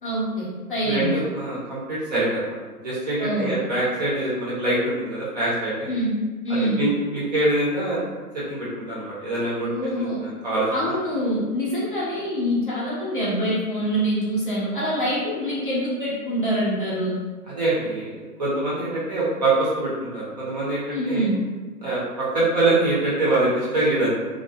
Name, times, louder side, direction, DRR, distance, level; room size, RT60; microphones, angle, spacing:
voice 1, 0.0-1.1 3.2-3.5 5.9-6.9 9.6-10.2 10.7-17.2 20.9-21.4, equal, 35° left, -7 dB, 0.5 m, -25 dB
voice 2, 0.8-2.6 2.8-5.9 6.5-8.1 8.3-9.7 9.9-11.0 17.5-21.3 21.8-24.1, right 2 dB, 30° right, -8 dB, 0.6 m, -24 dB
2.4 x 2.2 x 2.6 m, 1.3 s
hypercardioid pair, 150°, 47 cm